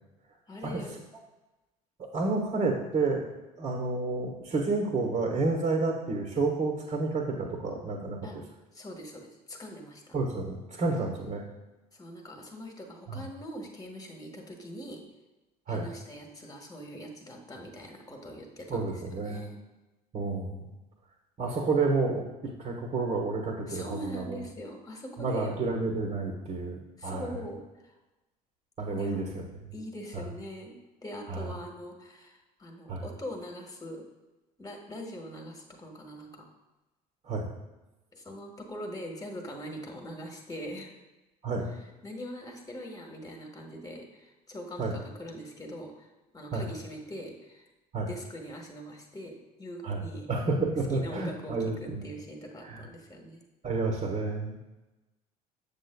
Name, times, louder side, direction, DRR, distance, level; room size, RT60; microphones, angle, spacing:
voice 1, 0.5-0.9 8.2-8.4 8.7-10.1 11.9-15.0 15.7-19.6 23.7-25.6 27.0-27.9 28.9-29.3 29.7-34.1 34.6-36.5 38.1-40.9 42.0-46.1 46.3-47.7 48.1-50.3 50.9-53.4, equal, 20° left, 2 dB, 1.3 m, -42 dB
voice 2, 2.1-3.2 3.6-8.2 10.1-11.4 13.1-13.2 15.7-15.9 18.7-19.4 20.1-20.7 21.4-24.4 25.2-27.3 28.8-29.5 31.3-31.5 32.9-33.0 37.3-37.5 41.4-41.7 44.8-44.9 46.5-46.6 47.9-48.1 49.8-50.0 50.3-52.0 52.6-52.8 53.6-54.6, right 3 dB, 40° right, 0 dB, 1.2 m, -30 dB
7.3 x 7.0 x 2.2 m, 1.1 s
hypercardioid pair, 65°, 20 cm